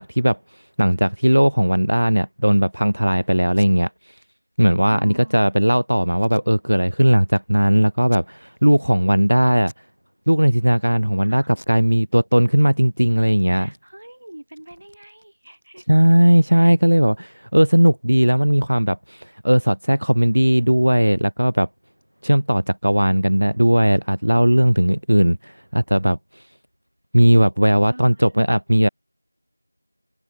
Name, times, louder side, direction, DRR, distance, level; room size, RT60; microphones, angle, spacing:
voice 1, 0.0-4.2 4.6-9.7 10.3-13.7 15.9-21.7 22.2-26.4 27.1-28.9, equal, 75° right, 0.8 m, -17 dB
Packing tape duct tape, 3.4-3.7 4.1-4.3 4.6-4.7 5.1-5.5 6.2-6.9 7.3-7.4 8.0-8.7 9.1-9.3 9.6-9.9 10.2-10.9 11.5-12.6 12.9-13.1 13.4-16.0, equal, 75° left, 5.5 m, -51 dB
voice 2, 4.9-5.4 11.2-11.5 13.5-15.8 16.5-16.7 27.9-28.5, right 1 dB, 50° right, 2.7 m, -43 dB
figure-of-eight pair, 175°, 0 cm